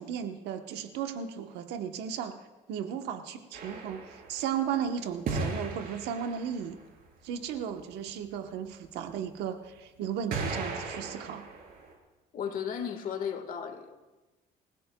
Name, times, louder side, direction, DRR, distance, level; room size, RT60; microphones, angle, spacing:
voice 1, 0.0-2.4 2.7-6.8 7.2-11.5, right 8 dB, 90° right, 6 dB, 1.1 m, -35 dB
sound 1, 3.5-4.7 5.2-6.8 9.1-9.2 10.3-11.9, right 3 dB, 60° right, 4.0 m, -36 dB
voice 2, 12.3-14.0, left 7 dB, 55° left, 7 dB, 1.6 m, -35 dB
27.5 x 16.0 x 2.3 m, 1.2 s
cardioid pair, 110°, 17 cm